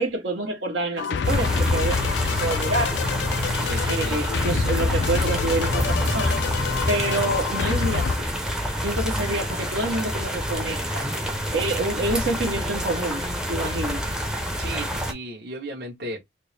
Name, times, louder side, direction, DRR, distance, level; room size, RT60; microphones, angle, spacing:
voice 1, 0.0-3.0 3.8-6.4 6.9-8.3 8.8-11.1 11.5-14.0, right 2 dB, 75° right, 1.3 m, -27 dB
sound 1, 1.0-8.2, left 5 dB, 65° left, 0.3 m, -27 dB
Various Rain and Thunder, 1.2-15.1, equal, 5° right, 0.6 m, -27 dB
voice 2, 3.6-4.2 14.6-16.2, right 1 dB, 55° right, 1.2 m, -35 dB
4.3 x 2.1 x 3.2 m
head